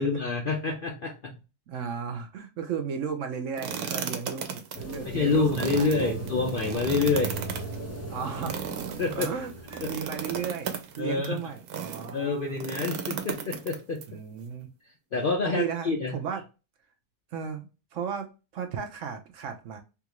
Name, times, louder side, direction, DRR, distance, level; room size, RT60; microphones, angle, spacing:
voice 1, 0.0-1.3 5.1-7.4 9.0-9.3 9.8-9.9 11.0-11.4 12.1-14.0 15.1-16.1, left 4 dB, 60° left, 1 dB, 0.5 m, -27 dB
voice 2, 1.7-6.3 8.1-8.8 9.1-12.6 14.1-14.7 15.5-16.4 17.3-19.8, right 7 dB, 65° right, 5 dB, 0.9 m, -35 dB
sound 1, 3.6-12.1 12.6-14.0, right 7 dB, 90° right, 1.1 m, -36 dB
sound 2, 4.7-10.7, right 2 dB, 15° left, 0.8 m, -38 dB
3.5 x 2.4 x 2.9 m, 0.30 s
omnidirectional pair, 1.6 m